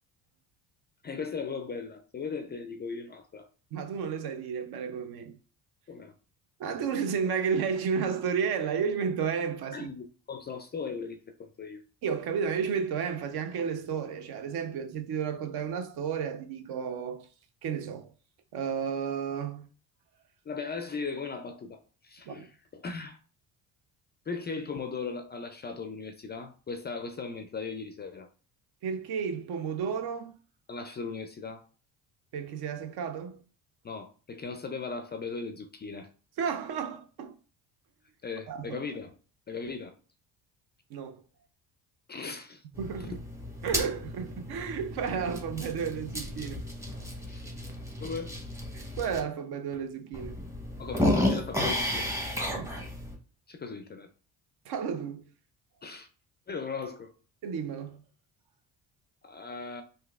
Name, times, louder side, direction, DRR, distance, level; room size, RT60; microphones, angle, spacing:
voice 1, 1.0-3.5 5.9-6.1 9.7-11.8 20.5-23.2 24.3-28.3 30.7-31.6 33.8-36.1 38.2-39.1 39.5-39.9 42.1-42.6 43.0-43.2 47.2-47.5 48.0-48.3 50.8-52.1 53.5-54.1 55.8-56.1 56.5-57.1 59.2-59.8, left 4 dB, 25° left, 0.3 m, -38 dB
voice 2, 3.7-5.3 6.6-9.9 12.0-17.2 17.6-18.1 18.5-19.6 22.3-22.5 28.8-30.4 32.3-33.4 36.4-37.4 38.5-38.8 40.9-41.2 42.8-43.2 43.6-46.6 48.7-50.4 52.5-52.7 54.7-55.3 57.4-58.0, right 6 dB, 60° right, 0.6 m, -32 dB
sound 1, 42.7-49.2 49.7-49.8 50.1-53.2, left 1 dB, 5° right, 0.9 m, -33 dB
3.8 x 2.6 x 2.3 m
supercardioid pair, 70°, 43 cm